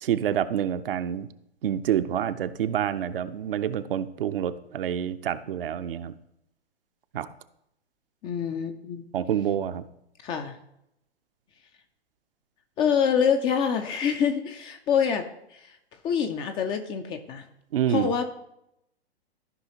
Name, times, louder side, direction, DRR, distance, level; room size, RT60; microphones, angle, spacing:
voice 1, 0.0-1.3 1.6-6.1 7.1-7.3 9.1-9.8 17.7-18.1, right 10 dB, 60° right, 11 dB, 0.6 m, -27 dB
voice 2, 8.2-9.0 10.2-10.6 12.8-15.8 16.0-17.4 17.9-18.2, left 7 dB, 15° left, 6 dB, 0.4 m, -26 dB
13.5 x 5.5 x 2.9 m, 0.80 s
figure-of-eight pair, 110°, 32 cm